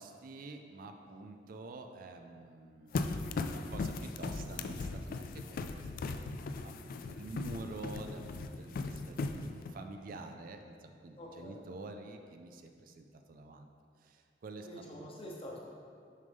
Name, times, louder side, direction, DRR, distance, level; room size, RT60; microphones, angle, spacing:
voice 1, 0.0-5.8 6.1-6.2 6.6-13.7 14.0-15.1, right 2 dB, 50° right, 5 dB, 0.4 m, -48 dB
sound 1, 2.9-9.7, left 3 dB, 55° left, 0.3 m, -38 dB
voice 2, 11.2-11.6 14.6-15.6, equal, 30° left, -2 dB, 0.9 m, -46 dB
6.4 x 5.3 x 3.5 m, 2.3 s
head